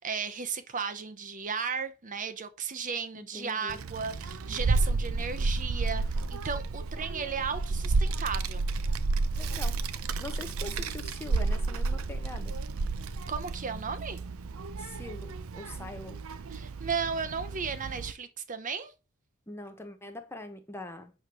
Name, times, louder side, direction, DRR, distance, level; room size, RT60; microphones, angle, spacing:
voice 1, 0.0-8.6 13.3-14.2 16.5-18.9, right 6 dB, 40° right, 0.8 m, -35 dB
voice 2, 3.1-3.8 9.3-9.8 10.2-12.6 14.8-16.2 19.5-21.1, left 2 dB, 10° left, 1.1 m, -43 dB
Child speech kid speaking, 3.7-18.1, right 3 dB, 90° right, 0.6 m, -31 dB
8.8 x 3.2 x 6.2 m
head